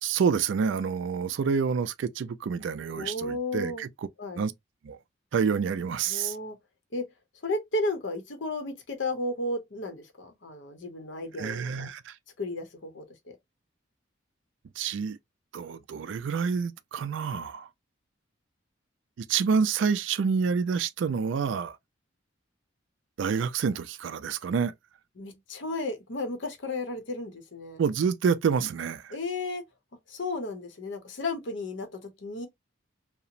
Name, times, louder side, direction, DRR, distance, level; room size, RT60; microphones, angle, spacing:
voice 1, 0.0-4.1 4.3-4.5 4.8-5.0 5.3-6.4 11.4-12.2 14.8-15.2 15.5-17.7 19.2-21.8 23.2-24.7 27.8-29.1, right 6 dB, 70° right, 0.3 m, -28 dB
voice 2, 2.9-3.8 4.2-4.4 6.1-6.6 6.9-7.1 7.4-11.9 12.4-13.0 25.2-27.8 29.1-29.6 30.1-32.5, left 2 dB, 65° left, 0.7 m, -33 dB
2.8 x 2.0 x 2.5 m
head